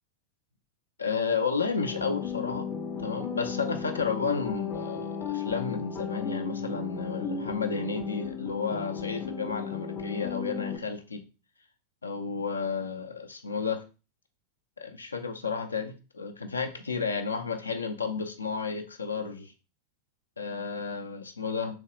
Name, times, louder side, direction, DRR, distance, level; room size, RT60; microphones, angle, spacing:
voice 1, 1.0-2.7 3.0-11.2 12.0-13.8 14.8-19.5 20.4-21.8, left 5 dB, 75° left, 8 dB, 0.5 m, -32 dB
sound 1, 1.8-10.8, left 7 dB, 25° left, 0.5 m, -35 dB
3.5 x 3.0 x 3.0 m, 0.32 s
figure-of-eight pair, 90°, 0 cm